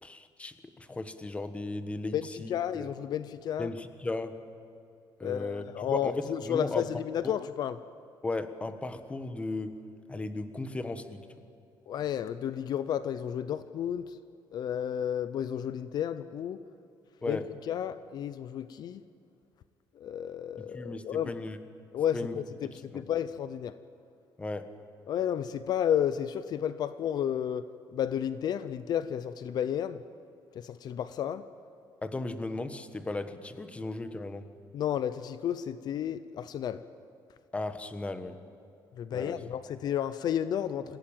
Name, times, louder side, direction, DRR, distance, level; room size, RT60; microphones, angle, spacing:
voice 1, 0.0-2.9 3.6-4.4 5.2-6.9 7.2-7.3 8.2-9.8 10.1-11.3 17.2-17.4 20.6-21.6 22.1-23.0 24.4-24.7 32.0-34.5 37.5-38.4 39.1-39.4, left 2 dB, 15° left, 10 dB, 1.3 m, -36 dB
voice 2, 2.1-3.7 5.2-7.8 11.9-14.2 14.5-16.6 17.3-17.4 17.7-19.0 20.0-21.4 21.9-23.7 25.1-30.0 30.5-31.4 34.7-36.8 39.0-41.0, left 9 dB, 60° left, 13 dB, 0.7 m, -32 dB
26.5 x 16.5 x 8.9 m, 2.4 s
cardioid pair, 135°, 8 cm